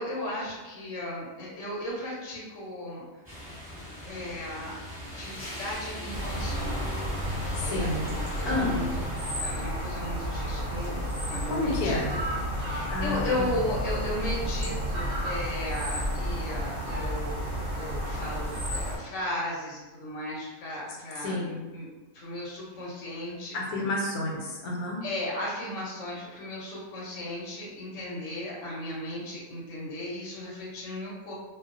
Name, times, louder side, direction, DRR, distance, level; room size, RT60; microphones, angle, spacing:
voice 1, 0.0-3.2 4.0-4.7 5.1-7.0 7.5-8.9 9.4-12.2 12.5-17.4 17.8-21.9 22.1-23.6 25.0-31.3, left 1 dB, 65° left, -5 dB, 0.9 m, -36 dB
sound 1, 3.2-9.4, left 1 dB, 5° right, 1.0 m, -38 dB
sound 2, 6.1-19.0, equal, 55° right, 0.6 m, -32 dB
voice 2, 7.5-8.1 8.4-8.8 11.5-12.1 12.9-13.5 21.2-21.6 23.5-25.0, left 2 dB, 90° left, -2 dB, 1.1 m, -30 dB
2.3 x 2.3 x 2.4 m, 1.2 s
omnidirectional pair, 1.5 m